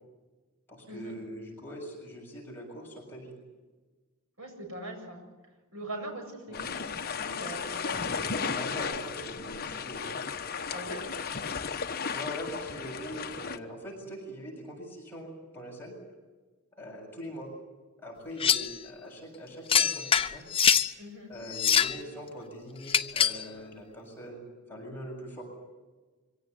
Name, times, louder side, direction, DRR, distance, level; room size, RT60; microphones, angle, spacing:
voice 1, 0.7-3.4 6.5-6.7 8.3-10.2 12.1-15.9 16.8-17.5 18.0-20.4 21.3-24.4 24.7-25.4, equal, 10° left, -3 dB, 7.4 m, -42 dB
voice 2, 4.4-5.2 5.7-6.8 7.2-8.3 10.7-11.1 21.0-21.3, right 1 dB, 70° right, 3 dB, 7.5 m, -41 dB
sound 1, 6.5-13.6, left 5 dB, 45° left, 1.1 m, -35 dB
sound 2, 18.4-18.7 19.7-20.9 21.5-22.0 22.9-23.4, left 8 dB, 25° left, 0.7 m, -24 dB
25.0 x 17.0 x 9.6 m, 1.3 s
head